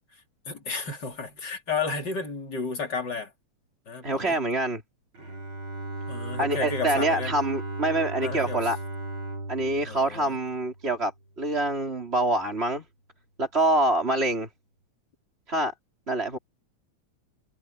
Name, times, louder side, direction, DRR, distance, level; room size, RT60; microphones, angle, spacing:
voice 1, 0.5-3.3 3.9-4.4 6.1-7.4 8.2-8.6 9.8-10.4, left 4 dB, 35° left, 4.0 m, -32 dB
voice 2, 4.0-4.8 6.4-8.8 9.5-11.1 11.4-12.8 13.4-14.5 15.5-15.7 16.1-16.4, right 1 dB, 20° right, 3.9 m, -25 dB
Bowed string instrument, 5.1-11.1, right 2 dB, 40° right, 6.1 m, -36 dB
omnidirectional pair, 3.3 m